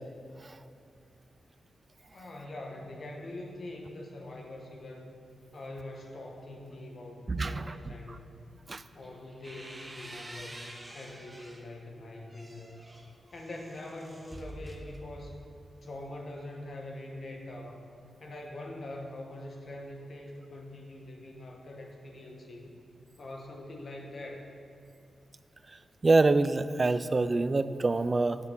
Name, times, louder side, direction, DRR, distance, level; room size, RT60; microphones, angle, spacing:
voice 1, 2.1-5.1 5.5-8.3 8.9-12.8 13.3-15.4 15.8-17.8 18.2-22.8 23.2-24.4, left 1 dB, 55° left, 1 dB, 1.2 m, -43 dB
voice 2, 7.3-7.9 8.7-8.8 26.0-28.4, right 3 dB, 35° right, 13 dB, 0.3 m, -25 dB
sound 1, 9.0-11.7 12.1-15.5, right 1 dB, 20° right, 0.9 m, -47 dB
11.0 x 5.7 x 3.9 m, 2.5 s
cardioid pair, 85°, 0 cm